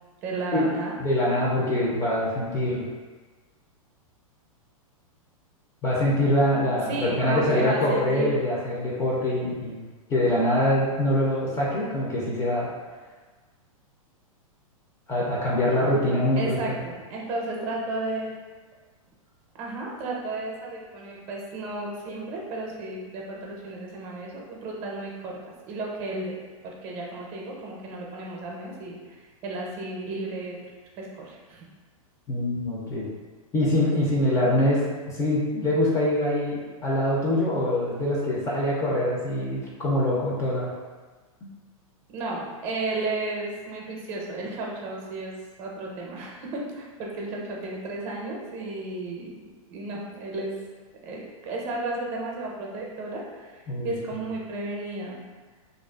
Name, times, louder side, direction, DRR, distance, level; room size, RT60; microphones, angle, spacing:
voice 1, 0.2-0.9 6.9-8.3 16.4-18.3 19.5-26.3 26.6-29.0 29.4-30.6 31.0-31.7 42.1-45.3 45.6-50.5 51.0-55.2, right 2 dB, 35° right, -2 dB, 0.6 m, -33 dB
voice 2, 1.0-2.8 5.8-9.8 10.1-12.7 15.1-16.6 32.3-33.1 33.5-40.7 41.4-41.5 53.7-53.9, left 1 dB, 15° left, -5 dB, 0.4 m, -24 dB
2.4 x 2.3 x 2.2 m, 1.3 s
hypercardioid pair, 125°, 18 cm